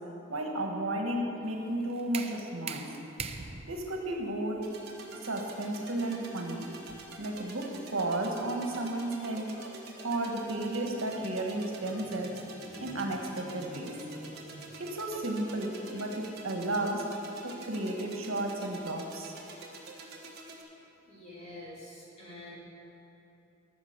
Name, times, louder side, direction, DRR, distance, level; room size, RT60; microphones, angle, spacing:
voice 1, 0.3-2.8 3.7-4.6 5.2-6.6 7.2-9.5 10.0-12.3 12.8-13.9 14.8-17.0 17.4-19.3, right 1 dB, 85° right, 1 dB, 1.4 m, -33 dB
sound 1, 1.4-7.2, right 5 dB, 30° right, 0.5 m, -44 dB
sound 2, 4.6-20.6, right 2 dB, 50° right, 1.4 m, -47 dB
sound 3, 10.8-15.5, equal, 85° left, 1.8 m, -51 dB
voice 2, 21.1-22.5, left 1 dB, 35° left, -7 dB, 2.9 m, -46 dB
13.5 x 6.0 x 6.5 m, 3.0 s
head